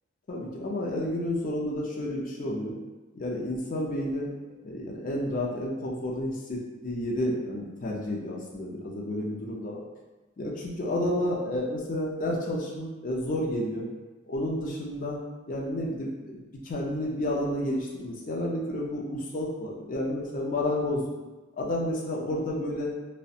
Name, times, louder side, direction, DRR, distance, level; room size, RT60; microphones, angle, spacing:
voice 1, 0.3-2.8 3.1-4.3 4.6-9.8 10.4-13.9 14.3-15.2 15.5-21.0 21.6-22.9, left 1 dB, 40° left, -2 dB, 0.5 m, -31 dB
2.4 x 2.1 x 2.7 m, 1.2 s
head